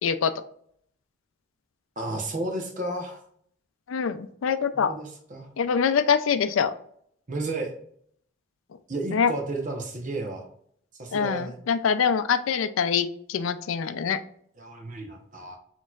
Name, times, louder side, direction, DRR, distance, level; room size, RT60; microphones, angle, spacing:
voice 1, 0.0-0.3 3.9-4.9 5.6-6.7 9.1-9.3 11.1-14.2, left 6 dB, 90° left, 11 dB, 0.4 m, -24 dB
voice 2, 2.0-3.2 4.7-5.5 7.3-7.7 8.9-10.5 11.0-11.6 14.6-15.6, right 2 dB, 40° right, 2 dB, 0.9 m, -32 dB
6.3 x 3.0 x 2.4 m, 0.65 s
head